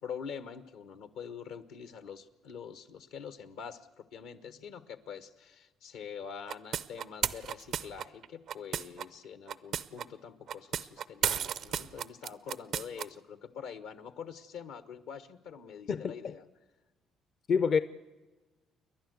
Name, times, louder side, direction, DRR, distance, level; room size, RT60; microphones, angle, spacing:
voice 1, 0.0-16.5, left 7 dB, 85° left, 1.2 m, -45 dB
sound 1, 6.5-9.0 9.5-10.0 10.5-13.0, right 8 dB, 70° right, 0.6 m, -33 dB
voice 2, 15.9-16.3 17.5-17.8, left 6 dB, 55° left, 0.6 m, -27 dB
29.0 x 11.0 x 8.1 m
supercardioid pair, 65°, 0 cm